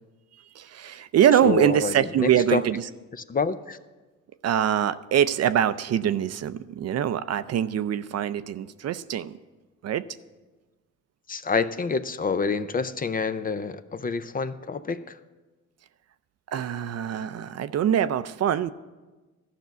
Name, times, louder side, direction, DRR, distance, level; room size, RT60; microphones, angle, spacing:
voice 1, 0.6-2.8 4.4-9.4 9.8-10.0 16.5-18.7, right 10 dB, 55° right, 13 dB, 0.5 m, -24 dB
voice 2, 1.4-2.6 3.3-3.8 11.3-15.2, left 4 dB, 30° left, 12 dB, 0.5 m, -27 dB
13.0 x 6.0 x 8.0 m, 1.2 s
cardioid pair, 90°, 30 cm